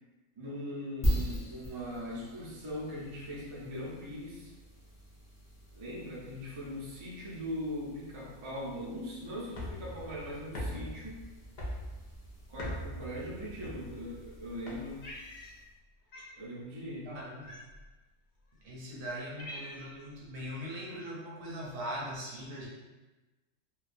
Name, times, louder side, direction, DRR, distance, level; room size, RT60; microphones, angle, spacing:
voice 1, 0.4-4.5 5.7-11.2 12.5-15.0 16.4-17.1, equal, 45° right, -6 dB, 0.4 m, -40 dB
sound 1, 1.0-15.8, equal, 20° left, 0.7 m, -41 dB
sound 2, 9.5-15.2, equal, 85° left, 0.4 m, -42 dB
Cat, 15.0-15.8 16.1-16.4 17.4-17.9 18.6-18.7 19.1-20.1, left 1 dB, 65° left, 0.8 m, -46 dB
voice 2, 17.0-17.5 18.6-22.7, equal, 80° right, -4 dB, 1.1 m, -40 dB
2.3 x 2.2 x 2.5 m, 1.2 s
omnidirectional pair, 1.3 m